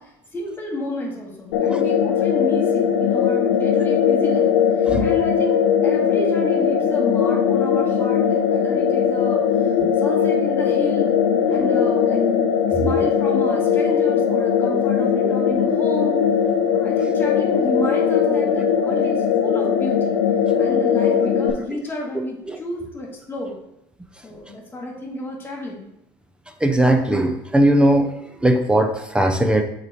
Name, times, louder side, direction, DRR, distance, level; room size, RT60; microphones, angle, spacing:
voice 1, 0.0-4.5 4.8-9.7 10.0-11.1 11.5-12.2 12.7-16.1 16.7-20.2 20.6-23.5 24.2-25.9, left 1 dB, 20° left, -2 dB, 1.9 m, -31 dB
sound 1, 1.5-21.5, left 7 dB, 85° left, 0.8 m, -19 dB
voice 2, 26.6-28.1 28.4-29.6, right 1 dB, 10° right, 6 dB, 0.5 m, -18 dB
7.5 x 4.1 x 3.1 m, 0.81 s
supercardioid pair, 115°, 12 cm